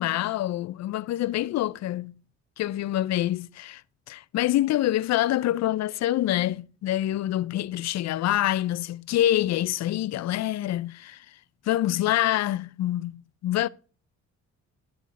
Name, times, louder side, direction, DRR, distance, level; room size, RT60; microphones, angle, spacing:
voice 1, 0.0-2.1 2.6-3.8 4.1-11.3 11.6-13.7, left 14 dB, 65° left, 0.5 m, -26 dB
12.0 x 4.9 x 5.8 m
cardioid pair, 90°, 30 cm